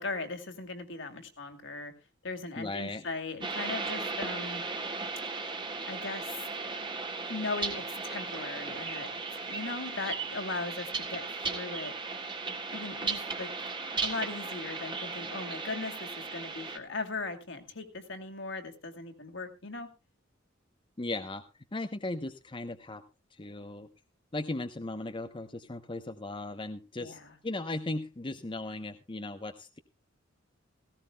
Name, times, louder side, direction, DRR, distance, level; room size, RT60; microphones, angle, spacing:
voice 1, 0.0-1.9 2.2-4.6 5.9-6.4 7.3-12.0 12.7-13.5 14.0-19.9 27.0-27.3, left 3 dB, 65° left, 6 dB, 2.3 m, -38 dB
voice 2, 2.6-3.0 21.0-21.4 21.7-23.0 23.3-23.9 24.3-29.8, left 2 dB, 25° left, 7 dB, 0.8 m, -37 dB
sound 1, 3.4-16.8, right 4 dB, 25° right, 1.7 m, -36 dB
17.5 x 16.5 x 2.3 m, 0.28 s
head